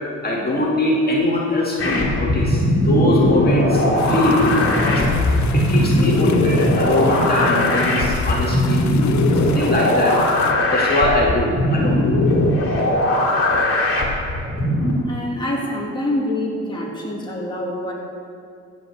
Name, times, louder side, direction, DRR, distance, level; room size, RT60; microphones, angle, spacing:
voice 1, 0.2-4.6 4.8-8.8 9.2-10.2 10.7-12.0 12.3-12.4 12.8-12.9, left 1 dB, 30° left, -4 dB, 2.1 m, -22 dB
sound 1, 1.8-14.9, left 1 dB, 45° left, 2.4 m, -19 dB
sound 2, 4.0-10.5, left 7 dB, 65° left, 0.8 m, -32 dB
voice 2, 15.1-17.9, left 1 dB, 15° left, -3 dB, 2.2 m, -25 dB
15.5 x 5.3 x 6.6 m, 2.4 s
cardioid pair, 90°, 30 cm